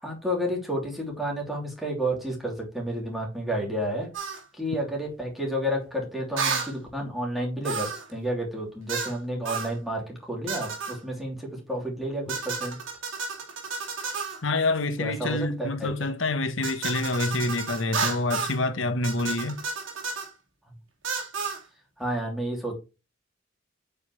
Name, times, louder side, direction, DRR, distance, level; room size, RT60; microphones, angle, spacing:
voice 1, 0.0-4.1 4.5-12.8 15.0-15.9 22.0-22.7, equal, ahead, 3.2 m, -31 dB
sound 1, 4.1-4.4 6.4-6.7 7.6-8.1 8.9-9.2 9.5-9.7 10.5-11.0 12.3-14.4 16.6-18.6 19.0-20.3 21.0-21.6, right 5 dB, 85° right, 2.4 m, -31 dB
voice 2, 14.4-19.6, left 2 dB, 85° left, 1.2 m, -27 dB
8.3 x 5.5 x 3.2 m
head